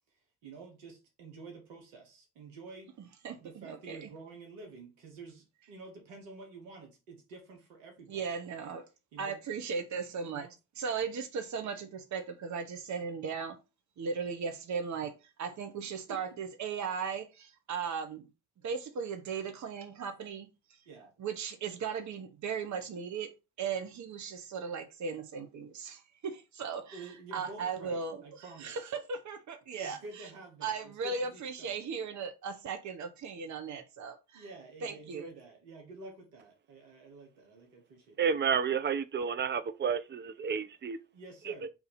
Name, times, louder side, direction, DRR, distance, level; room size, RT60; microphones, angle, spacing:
voice 1, 0.4-2.9 3.4-8.3 9.1-9.4 10.3-10.5 16.1-16.4 20.8-21.1 26.9-28.8 29.8-31.8 34.3-38.2 41.1-41.7, right 3 dB, 85° right, 1.4 m, -49 dB
voice 2, 3.2-4.1 8.1-8.9 9.2-10.5 10.8-13.6 14.0-15.1 15.4-18.3 18.6-20.5 21.2-23.3 23.6-30.0 30.6-34.4 34.8-35.3, right 5 dB, 50° right, 0.9 m, -37 dB
voice 3, 38.2-41.0 41.5-41.7, right 6 dB, 30° right, 0.6 m, -31 dB
4.1 x 2.7 x 4.2 m
hypercardioid pair, 45°, 38 cm